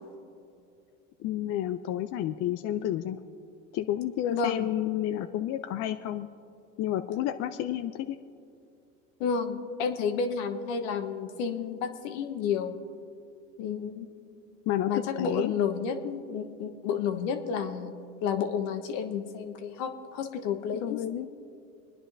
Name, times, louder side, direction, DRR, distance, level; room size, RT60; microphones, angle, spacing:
voice 1, 1.2-3.2 3.7-6.3 6.8-8.2 14.7-15.5 20.8-21.3, left 12 dB, 45° left, 9 dB, 0.5 m, -30 dB
voice 2, 4.3-4.7 9.2-12.8 13.6-14.1 14.9-17.9 18.2-21.0, left 6 dB, 70° left, 7 dB, 1.2 m, -31 dB
27.0 x 10.0 x 2.7 m, 2.6 s
hypercardioid pair, 95°, 38 cm